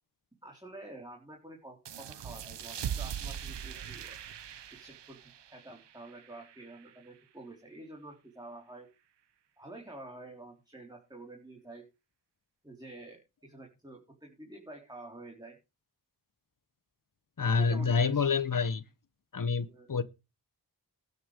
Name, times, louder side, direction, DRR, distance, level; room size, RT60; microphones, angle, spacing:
voice 1, 0.4-4.2 4.7-5.2 5.5-8.9 9.6-11.8 12.6-15.6 17.6-18.3 19.7-19.9, right 2 dB, 10° right, 3.9 m, -49 dB
sound 1, 1.8-7.1, right 9 dB, 90° right, 0.9 m, -41 dB
voice 2, 17.4-18.8 19.3-20.0, left 5 dB, 50° left, 1.1 m, -27 dB
12.5 x 6.9 x 6.5 m
wide cardioid pair, 65°, 41 cm